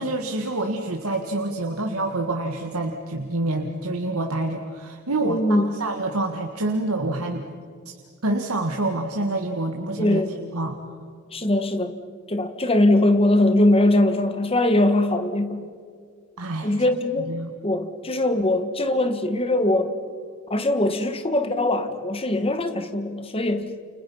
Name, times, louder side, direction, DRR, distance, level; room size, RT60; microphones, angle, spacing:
voice 1, 0.0-7.4 7.9-8.0 8.2-10.2 10.5-10.8 16.4-16.7 17.3-17.5, right 2 dB, 85° right, 2 dB, 1.9 m, -27 dB
voice 2, 5.2-5.7 10.0-10.4 11.3-12.0 12.3-15.7 16.6-17.3 17.6-19.9 20.5-23.7, left 1 dB, 25° left, 8 dB, 1.7 m, -21 dB
30.0 x 29.0 x 5.7 m, 2.2 s
head